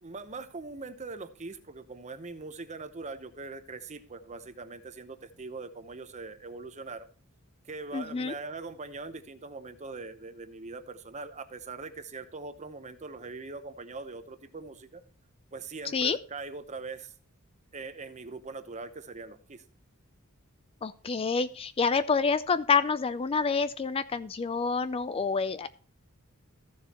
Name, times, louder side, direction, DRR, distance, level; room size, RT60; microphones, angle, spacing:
voice 1, 0.0-7.1 7.6-15.0 15.5-17.1 17.7-19.6, right 3 dB, 35° right, 10 dB, 0.9 m, -41 dB
voice 2, 7.9-8.3 15.9-16.2 20.8-25.7, left 5 dB, 25° left, 14 dB, 0.3 m, -28 dB
15.0 x 7.0 x 2.9 m, 0.42 s
head